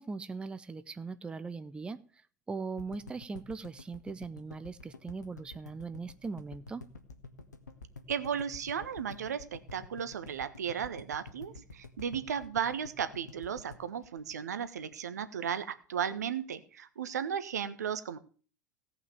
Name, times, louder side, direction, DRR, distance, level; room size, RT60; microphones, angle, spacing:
voice 1, 0.0-2.0 2.5-6.8, right 4 dB, 10° right, 13 dB, 0.6 m, -40 dB
sound 1, 2.8-14.9 15.2-15.3 15.5-15.6, left 3 dB, 75° left, 1.5 m, -49 dB
voice 2, 8.1-18.2, right 8 dB, 65° right, 12 dB, 1.2 m, -35 dB
17.0 x 5.8 x 6.9 m, 0.40 s
figure-of-eight pair, 85°, 9 cm